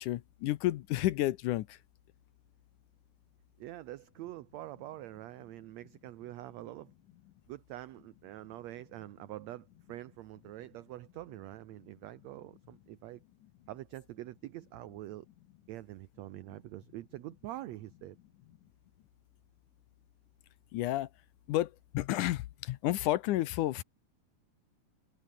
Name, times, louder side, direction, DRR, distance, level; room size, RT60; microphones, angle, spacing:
voice 1, 0.0-1.7 20.7-21.1 21.5-23.8, left 15 dB, 75° left, 2.2 m, -31 dB
voice 2, 3.6-6.9 7.5-13.2 13.7-15.3 15.7-18.2, right 15 dB, 75° right, 1.7 m, -45 dB
omnidirectional pair, 3.8 m